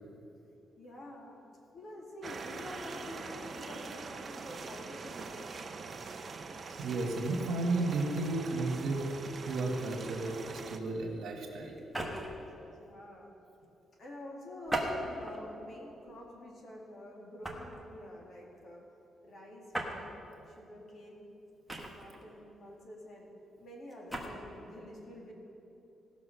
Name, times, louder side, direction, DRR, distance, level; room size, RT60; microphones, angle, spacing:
voice 1, 0.8-1.4 1.7-5.6 12.7-13.3 14.0-18.9 19.2-20.1 20.5-21.3 21.9-23.3 23.6-25.3, left 1 dB, 40° left, -1 dB, 2.1 m, -48 dB
sound 1, 2.2-10.8, right 4 dB, 30° right, 0.6 m, -43 dB
voice 2, 6.7-11.8, right 2 dB, 70° right, 1 dB, 1.9 m, -33 dB
sound 2, 11.8-12.4 14.7-15.4 16.1-16.3 17.4-17.8 19.7-20.0 21.7-22.2 23.9-24.3, right 1 dB, ahead, 1.2 m, -36 dB
17.0 x 6.1 x 6.5 m, 2.9 s
cardioid pair, 175°, 0 cm